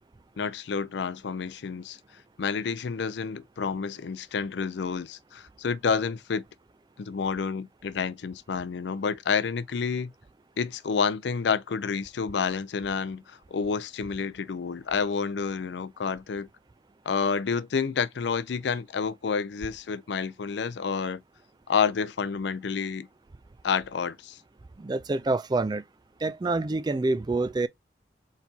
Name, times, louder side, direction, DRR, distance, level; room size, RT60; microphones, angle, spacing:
voice 1, 0.4-2.0 2.4-6.4 7.0-10.1 10.6-16.5 17.1-21.2 21.7-23.1 23.6-24.4, left 5 dB, 70° left, 0.4 m, -29 dB
voice 2, 24.8-25.8 26.2-27.7, right 2 dB, 20° right, 0.3 m, -27 dB
4.4 x 4.1 x 2.7 m
head